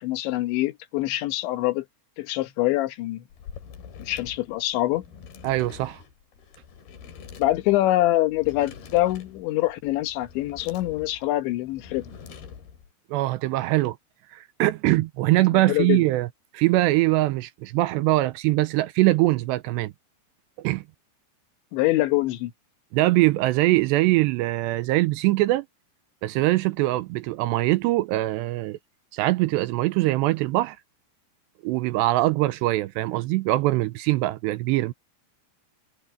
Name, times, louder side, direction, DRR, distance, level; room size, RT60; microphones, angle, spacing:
voice 1, 0.0-1.9 2.2-3.2 4.0-5.0 7.4-12.1 15.5-16.0 21.7-22.5, left 16 dB, 80° left, 3.4 m, -24 dB
sound 1, 3.3-12.9, left 7 dB, 60° left, 4.4 m, -45 dB
voice 2, 5.4-6.0 13.1-14.0 14.3-16.3 16.5-19.9 20.6-20.8 22.9-25.7 26.2-28.8 29.1-30.8 31.6-34.9, right 18 dB, 85° right, 2.7 m, -22 dB
omnidirectional pair, 5.2 m